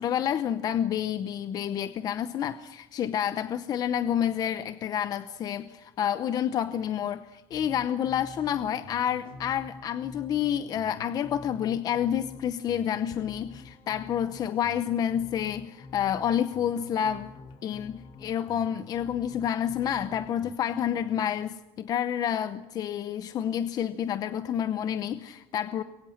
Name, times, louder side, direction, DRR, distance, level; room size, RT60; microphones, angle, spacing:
voice 1, 0.0-17.3 17.6-25.8, left 9 dB, 40° left, 0.8 m, -29 dB
sound 1, 7.5-20.5, left 4 dB, 60° left, 3.2 m, -47 dB
27.0 x 22.5 x 6.5 m
cardioid pair, 165°, 10 cm